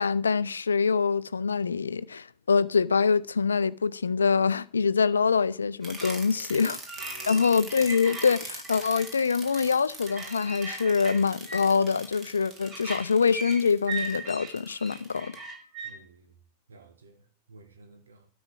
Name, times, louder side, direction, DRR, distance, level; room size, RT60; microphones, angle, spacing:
voice 1, 0.0-6.8 7.3-15.4, left 5 dB, 75° left, 0.5 m, -25 dB
sound 1, 5.8-15.9, right 3 dB, 25° right, 3.6 m, -38 dB
voice 2, 7.0-7.5 15.8-16.3 16.7-17.2 17.5-18.3, right 3 dB, 70° right, 1.7 m, -51 dB
12.5 x 6.2 x 6.3 m
figure-of-eight pair, 90°, 0 cm